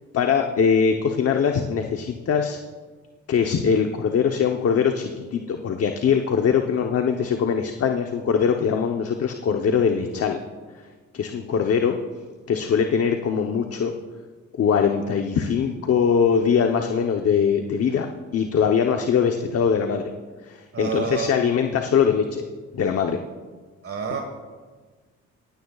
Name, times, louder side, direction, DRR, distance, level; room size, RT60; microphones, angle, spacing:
voice 1, 0.1-2.6 3.3-10.4 11.1-12.0 12.5-13.9 14.5-18.1 18.3-20.1 20.5-22.4 22.7-23.2, left 6 dB, 50° left, 4 dB, 0.9 m, -22 dB
voice 2, 20.7-21.3 23.8-24.2, right 6 dB, 50° right, 3 dB, 1.6 m, -28 dB
17.5 x 16.0 x 2.4 m, 1.4 s
cardioid pair, 90°, 30 cm